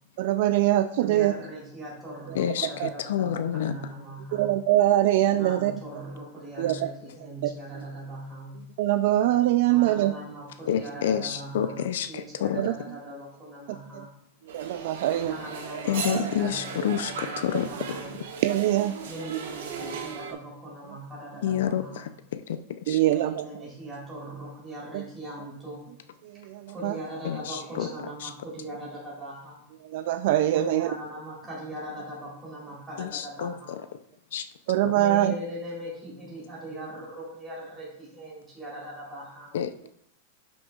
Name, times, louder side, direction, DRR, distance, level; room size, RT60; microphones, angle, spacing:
voice 1, 0.2-1.3 2.8-2.9 4.3-5.7 6.6-6.9 7.2-7.5 8.8-10.1 12.6-12.7 14.5-15.3 18.4-18.9 19.3-19.4 22.9-23.4 24.9-25.0 26.3-26.9 29.9-30.9 34.7-35.3, right 14 dB, 50° right, 10 dB, 0.3 m, -23 dB
voice 2, 1.0-4.5 5.4-8.6 9.7-14.1 15.2-18.1 19.0-22.0 23.0-25.9 26.7-29.6 30.5-33.8 34.9-39.5, right 1 dB, 10° right, -6 dB, 3.3 m, -40 dB
voice 3, 2.3-3.7 6.7-6.8 10.7-12.6 15.9-18.0 21.4-23.0 27.2-27.9 28.2-28.3 33.0-33.8 34.3-34.5 34.8-34.9 39.5-39.9, left 9 dB, 70° left, 11 dB, 0.4 m, -29 dB
sound 1, 14.5-20.3, right 5 dB, 80° right, 1.6 m, -37 dB
11.5 x 6.1 x 2.4 m, 0.73 s
supercardioid pair, 170°, 0 cm